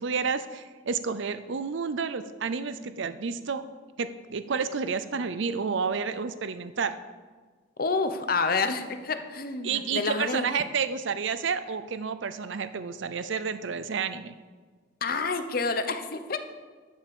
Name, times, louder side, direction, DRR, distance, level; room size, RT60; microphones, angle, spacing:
voice 1, 0.0-3.7 4.0-7.0 9.6-14.4, right 5 dB, 70° right, 12 dB, 0.5 m, -30 dB
voice 2, 7.8-10.5 15.0-16.4, left 4 dB, 45° left, 8 dB, 0.8 m, -28 dB
11.5 x 5.7 x 7.0 m, 1.5 s
head